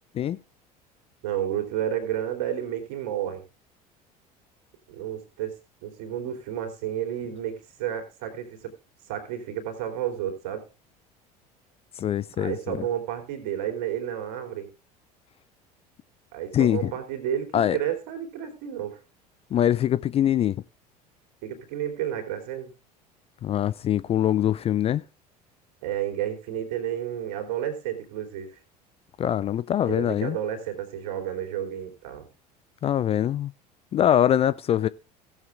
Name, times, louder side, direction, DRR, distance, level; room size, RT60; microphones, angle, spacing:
voice 1, 1.2-3.4 4.9-5.5 5.8-8.7 9.1-10.6 12.4-14.7 16.3-19.0 21.4-22.7 25.8-28.6 29.8-32.3, right 10 dB, 60° right, 3.2 m, -31 dB
voice 2, 12.0-12.8 16.5-16.9 17.5-17.8 19.5-20.6 23.4-25.0 29.2-30.4 32.8-33.5 33.9-34.9, left 10 dB, 30° left, 0.5 m, -23 dB
17.0 x 7.3 x 3.5 m
figure-of-eight pair, 65°, 20 cm